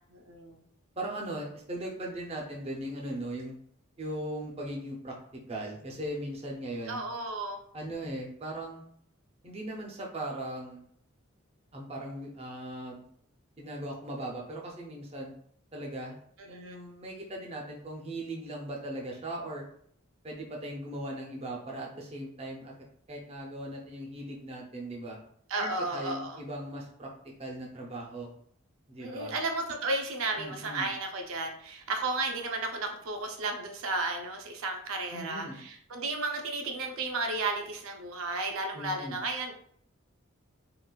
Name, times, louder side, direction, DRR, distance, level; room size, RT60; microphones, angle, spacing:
voice 1, 0.1-0.6 6.9-7.6 16.5-16.8 25.5-26.4 29.0-39.5, right 2 dB, 80° right, 3 dB, 0.5 m, -33 dB
voice 2, 1.0-3.6 4.0-5.2 5.5-7.0 7.7-8.8 9.4-10.8 11.7-13.0 13.6-15.3 15.7-16.2 16.4-19.6 20.2-25.2 25.6-27.1 27.4-28.3 28.9-29.4 30.4-30.9 35.1-35.6 38.7-39.2, right 1 dB, 30° right, -1 dB, 0.5 m, -38 dB
3.8 x 2.3 x 2.3 m, 0.62 s
head